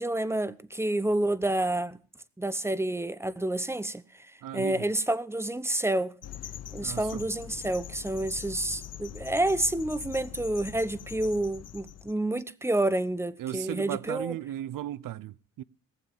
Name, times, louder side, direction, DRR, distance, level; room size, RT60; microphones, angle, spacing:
voice 1, 0.0-2.0 2.4-4.0 4.5-6.1 6.7-14.3, right 1 dB, 5° right, 0.9 m, -29 dB
voice 2, 4.4-4.9 6.8-7.3 13.4-15.6, right 12 dB, 65° right, 0.6 m, -36 dB
sound 1, 6.2-12.1, left 10 dB, 45° left, 0.6 m, -43 dB
18.5 x 7.3 x 7.1 m
supercardioid pair, 60°, 35 cm